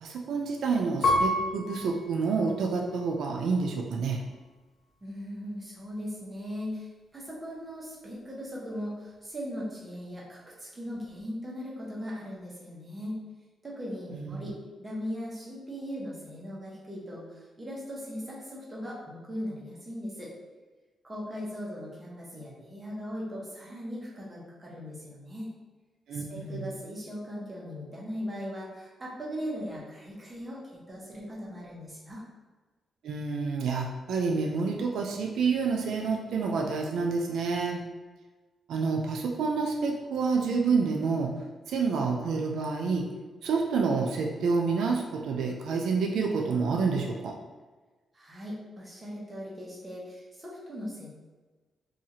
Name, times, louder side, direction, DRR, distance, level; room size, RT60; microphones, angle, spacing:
voice 1, 0.0-4.2 14.1-14.4 26.1-26.7 33.0-37.8 38.7-41.4 41.7-43.1 43.4-47.4, right 4 dB, 85° right, 1 dB, 0.3 m, -28 dB
Piano, 1.0-3.8 4.4-5.1, left 1 dB, 65° left, 0.4 m, -31 dB
voice 2, 5.0-6.9 7.1-13.2 13.6-20.3 21.0-25.5 26.1-32.2 48.1-51.1, equal, 15° right, -5 dB, 0.8 m, -39 dB
2.7 x 2.3 x 2.8 m, 1.3 s
wide cardioid pair, 135°, 0 cm